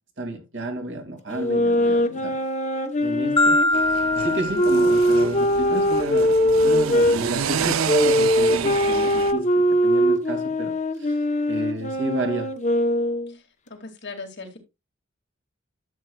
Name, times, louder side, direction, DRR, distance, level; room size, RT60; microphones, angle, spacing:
voice 1, 0.2-2.3 3.0-3.6 3.9-10.7 11.0-11.1 11.5-12.5, right 1 dB, 60° right, 2.5 m, -31 dB
sound 1, 1.3-7.2 7.9-13.3, equal, 35° left, 1.0 m, -21 dB
voice 2, 1.7-2.5 13.7-14.6, left 3 dB, 60° left, 2.3 m, -39 dB
Marimba xylophone, 3.4-5.6, left 1 dB, 20° left, 0.7 m, -23 dB
sound 2, 3.7-9.3, right 7 dB, 85° right, 0.5 m, -29 dB
12.5 x 7.6 x 2.3 m
head